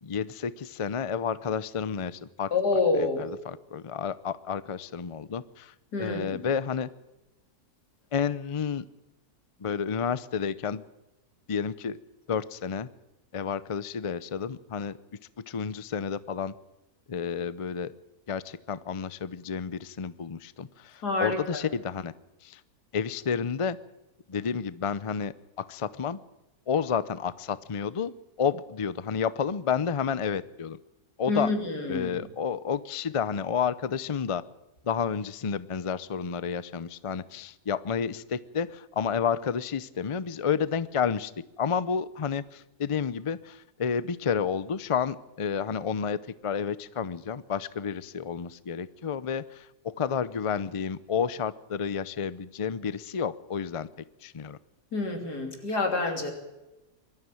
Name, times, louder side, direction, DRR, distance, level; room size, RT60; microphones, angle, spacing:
voice 1, 0.0-2.5 2.9-6.9 8.1-8.8 9.6-10.8 11.5-12.0 12.3-12.9 13.3-15.2 15.5-16.5 17.1-17.9 18.3-22.1 22.4-22.6 22.9-23.8 24.3-26.2 26.7-30.8 31.2-31.5 31.9-34.4 34.8-41.3 41.6-53.9 54.2-54.6, left 7 dB, 60° left, 16 dB, 0.3 m, -30 dB
voice 2, 2.5-3.3 5.9-6.5 21.0-21.6 31.3-32.2 54.9-56.3, left 3 dB, 90° left, 3 dB, 3.7 m, -27 dB
22.0 x 13.5 x 9.2 m, 1.0 s
omnidirectional pair, 1.7 m